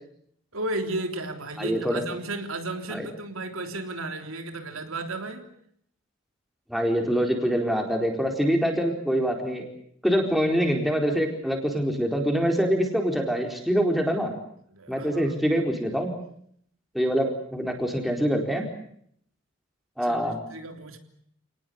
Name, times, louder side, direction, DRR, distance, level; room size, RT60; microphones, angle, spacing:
voice 1, 0.5-5.5 14.7-15.3 20.0-21.0, right 2 dB, 90° right, 5 dB, 3.5 m, -34 dB
voice 2, 1.6-2.0 2.9-3.1 6.7-9.7 10.0-14.3 14.9-16.1 16.9-18.6 20.0-20.4, equal, ahead, 2 dB, 4.4 m, -25 dB
29.5 x 19.0 x 8.4 m, 0.68 s
head